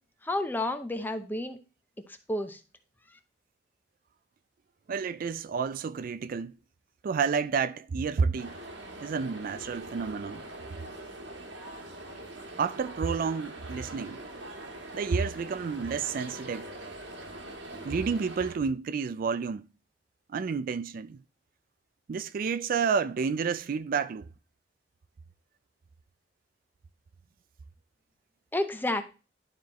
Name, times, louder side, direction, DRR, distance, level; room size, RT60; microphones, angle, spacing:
voice 1, 0.2-1.6 2.3-2.6 28.5-29.0, left 1 dB, 10° left, 0.8 m, -30 dB
voice 2, 4.9-6.5 7.0-8.6 9.0-10.4 12.6-14.2 14.9-16.7 17.8-19.7 20.3-21.2 22.1-24.3, right 5 dB, 50° right, 0.3 m, -30 dB
sound 1, 8.4-18.5, right 1 dB, 80° right, 1.5 m, -43 dB
11.5 x 4.4 x 3.0 m
head